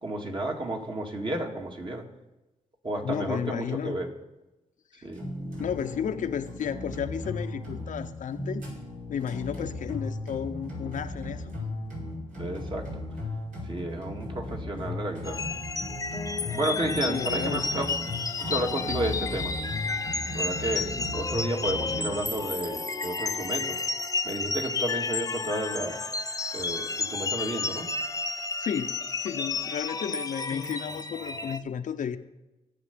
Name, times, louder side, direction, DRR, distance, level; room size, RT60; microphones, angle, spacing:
voice 1, 0.0-2.1 2.8-4.1 5.0-5.3 12.4-13.0 13.6-15.4 16.5-17.9 18.4-19.5 20.3-23.8 24.2-26.0 26.5-27.9, right 1 dB, 35° right, 2 dB, 2.0 m, -32 dB
voice 2, 3.0-4.0 4.9-5.0 5.4-8.7 9.1-11.5 16.9-17.9 20.9-21.1 28.6-32.2, left 8 dB, 70° left, 8 dB, 0.7 m, -33 dB
sound 1, 5.1-22.3, left 2 dB, 75° right, 4.8 m, -36 dB
sound 2, 15.2-31.6, left 4 dB, 25° left, 0.6 m, -32 dB
17.0 x 6.8 x 5.2 m, 1.0 s
cardioid pair, 70°, 14 cm